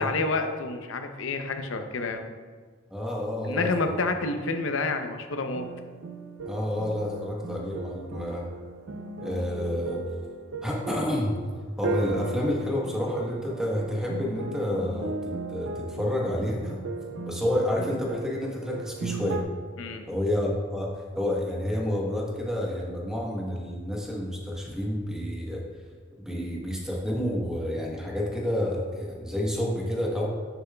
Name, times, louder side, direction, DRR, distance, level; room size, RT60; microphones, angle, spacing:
voice 1, 0.0-2.2 3.4-5.7 19.8-20.0, left 3 dB, 70° left, 6 dB, 0.6 m, -29 dB
voice 2, 2.9-4.0 6.4-8.5 9.2-10.0 10.6-11.4 11.8-16.8 17.2-19.4 20.1-25.6 26.2-30.3, left 1 dB, 5° right, -3 dB, 1.1 m, -29 dB
sound 1, 5.5-19.4, right 3 dB, 70° right, 0.5 m, -36 dB
9.5 x 6.9 x 2.3 m, 1.6 s
head